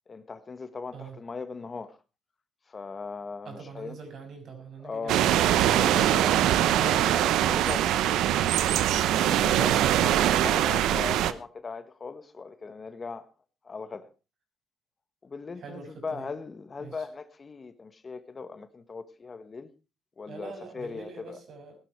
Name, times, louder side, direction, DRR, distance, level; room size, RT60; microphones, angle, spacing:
voice 1, 0.1-2.0 2.7-4.0 4.8-5.3 5.6-8.2 9.2-13.3 13.6-14.1 15.2-19.7 20.2-21.4, left 4 dB, 35° left, 1.3 m, -39 dB
voice 2, 3.4-5.3 6.2-6.5 15.6-16.3 16.8-16.9 20.3-21.8, right 5 dB, 65° right, 6.4 m, -43 dB
sound 1, 5.1-11.3, right 12 dB, 90° right, 0.9 m, -23 dB
16.5 x 11.5 x 4.6 m
cardioid pair, 90°, 0 cm